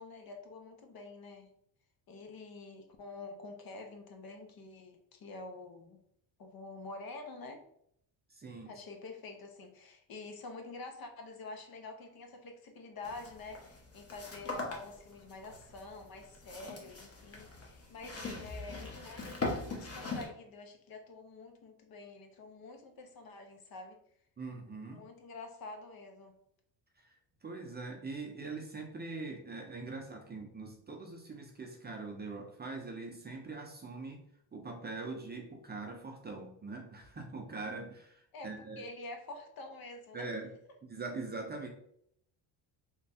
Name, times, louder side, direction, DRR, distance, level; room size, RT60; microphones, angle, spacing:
voice 1, 0.0-1.5 2.1-6.0 6.4-7.6 8.6-24.0 24.9-26.4 38.3-40.3, left 3 dB, 50° left, 4 dB, 0.8 m, -47 dB
voice 2, 8.3-8.7 24.4-25.0 27.0-27.1 27.4-34.2 34.5-38.8 40.1-40.5 40.8-41.7, right 3 dB, 20° right, 2 dB, 0.6 m, -42 dB
sound 1, 13.0-20.3, left 2 dB, 30° left, 1.1 m, -41 dB
3.3 x 2.3 x 4.1 m, 0.70 s
cardioid pair, 100°, 47 cm